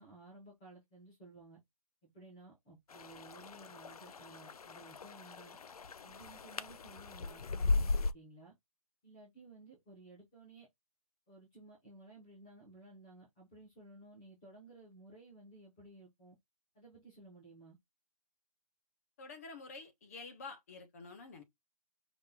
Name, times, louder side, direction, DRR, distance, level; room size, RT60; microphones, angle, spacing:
voice 1, 0.0-1.6 2.0-5.6 6.0-8.5 9.0-10.7 11.3-16.4 16.7-17.8, right 2 dB, 5° left, 0.4 m, -56 dB
sound 1, 2.9-8.1, left 3 dB, 85° left, 0.6 m, -37 dB
voice 2, 19.2-21.4, left 3 dB, 25° left, 1.1 m, -49 dB
5.0 x 2.8 x 3.4 m
hypercardioid pair, 175°, 19 cm